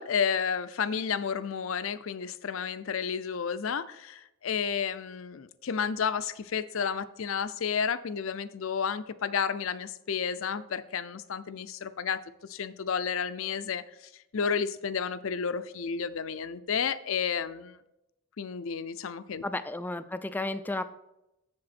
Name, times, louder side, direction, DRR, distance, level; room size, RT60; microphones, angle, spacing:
voice 1, 0.0-17.8 18.4-19.4, left 6 dB, 65° left, 14 dB, 0.5 m, -31 dB
voice 2, 19.4-20.8, left 2 dB, 10° left, 11 dB, 0.3 m, -33 dB
7.7 x 7.0 x 4.2 m, 0.90 s
head